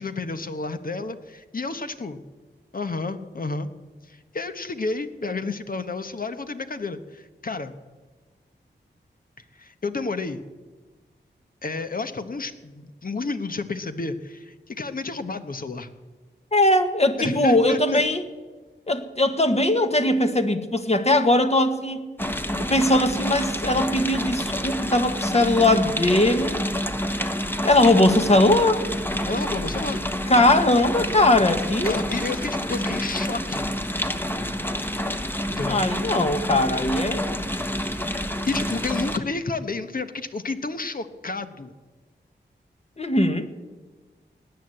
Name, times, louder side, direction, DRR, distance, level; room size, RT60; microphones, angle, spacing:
voice 1, 0.0-2.2 2.7-3.7 4.1-7.7 9.6-10.4 11.6-15.9 17.2-18.0 29.3-30.0 31.8-33.7 35.5-35.8 38.5-41.7, left 3 dB, 50° left, 9 dB, 1.2 m, -31 dB
voice 2, 16.5-18.2 18.9-22.1 22.6-26.6 27.6-28.8 30.3-32.0 35.6-37.4 43.0-43.5, left 1 dB, 35° left, 7 dB, 1.5 m, -20 dB
sound 1, 22.2-39.2, equal, 10° left, 1.2 m, -28 dB
18.5 x 9.7 x 7.9 m, 1.3 s
cardioid pair, 55°, 19 cm